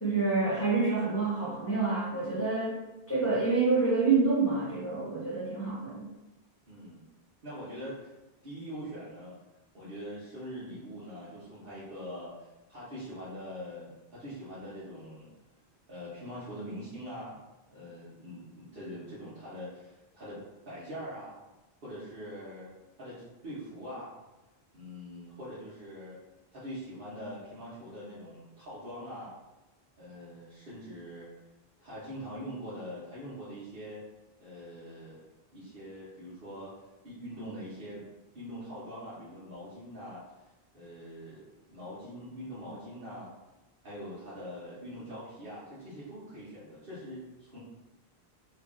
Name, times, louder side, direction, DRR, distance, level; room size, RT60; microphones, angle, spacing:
voice 1, 0.0-2.8 3.1-6.0, right 4 dB, 15° left, -8 dB, 1.1 m, -27 dB
voice 2, 6.7-7.1 7.4-8.1 8.4-9.3 9.7-15.3 15.9-17.4 17.7-21.4 21.8-22.7 23.0-24.1 24.7-26.2 26.5-29.3 30.0-31.3 31.8-34.0 34.4-35.2 35.5-36.7 37.0-38.0 38.3-40.2 40.7-41.4 41.7-43.3 43.8-47.6, equal, 60° right, -10 dB, 1.1 m, -43 dB
3.2 x 2.4 x 3.5 m, 1.0 s
omnidirectional pair, 1.0 m